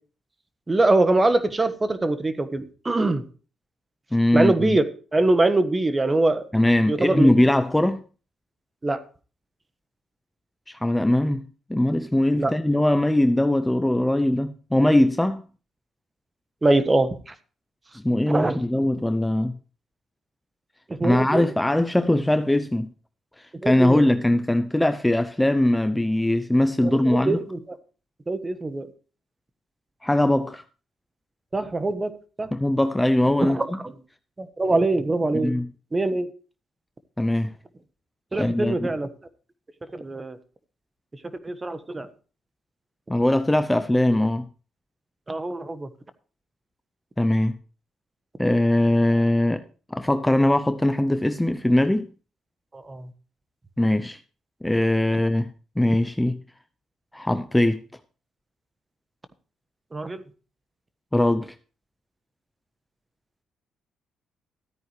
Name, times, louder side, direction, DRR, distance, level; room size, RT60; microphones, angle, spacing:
voice 1, 0.7-3.2 4.3-4.8 5.1-6.4 6.9-7.4 8.8-9.0 12.4-12.5 16.6-17.3 18.3-18.6 20.9-21.5 23.6-24.0 26.8-27.6 28.3-28.9 31.5-32.1 32.4-32.5 33.4-33.7 34.4-35.5 35.9-36.3 38.3-39.1 39.9-40.4 41.4-42.1 45.3-45.9 52.7-53.1 59.9-60.2, right 2 dB, 20° right, 1.3 m, -23 dB
voice 2, 4.1-4.8 6.5-8.0 10.7-15.4 17.9-19.5 21.0-22.9 23.4-27.4 30.0-30.6 32.5-33.8 35.3-35.7 37.2-37.5 38.3-38.9 43.1-44.5 47.2-47.6 48.4-49.6 49.9-52.1 53.8-54.2 54.6-55.5 55.8-56.4 57.1-57.8 61.1-61.5, left 1 dB, 10° left, 0.6 m, -21 dB
13.5 x 9.2 x 3.2 m
cardioid pair, 90°, 0 cm